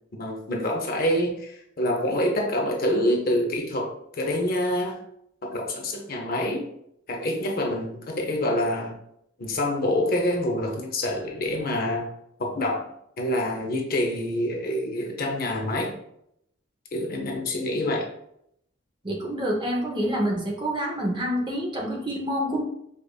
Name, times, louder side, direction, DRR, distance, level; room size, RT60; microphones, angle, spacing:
voice 1, 0.1-5.0 5.4-6.7 7.1-8.9 9.4-12.1 12.4-12.9 13.2-15.9 16.9-18.1, left 1 dB, 45° left, 1 dB, 0.5 m, -26 dB
voice 2, 19.0-22.6, equal, 20° right, -1 dB, 0.6 m, -27 dB
4.9 x 2.4 x 2.2 m, 0.76 s
head